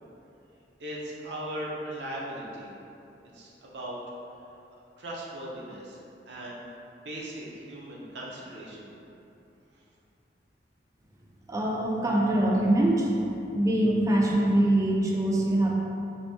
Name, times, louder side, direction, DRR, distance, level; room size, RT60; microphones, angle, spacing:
voice 1, 0.8-2.7 3.3-4.0 5.0-6.0 6.3-6.6 7.0-8.9, right 1 dB, 75° right, -4 dB, 0.6 m, -38 dB
voice 2, 11.5-13.2 13.5-15.7, right 1 dB, 20° right, -2 dB, 0.3 m, -23 dB
3.4 x 2.6 x 2.6 m, 2.8 s
head